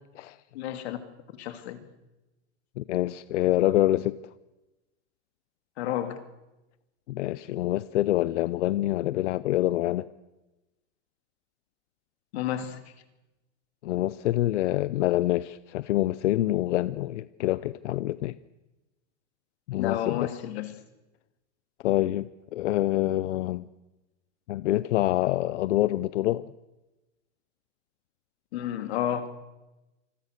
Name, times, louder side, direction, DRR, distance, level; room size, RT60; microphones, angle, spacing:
voice 1, 0.5-1.0 1.4-1.8 5.8-6.2 12.3-12.8 19.8-20.7 28.5-29.3, left 11 dB, 65° left, 2.6 m, -31 dB
voice 2, 2.8-4.2 7.1-10.1 13.8-18.3 19.7-20.3 21.8-23.6 24.5-26.4, left 15 dB, 90° left, 0.8 m, -26 dB
27.0 x 21.5 x 6.6 m
supercardioid pair, 170°, 35 cm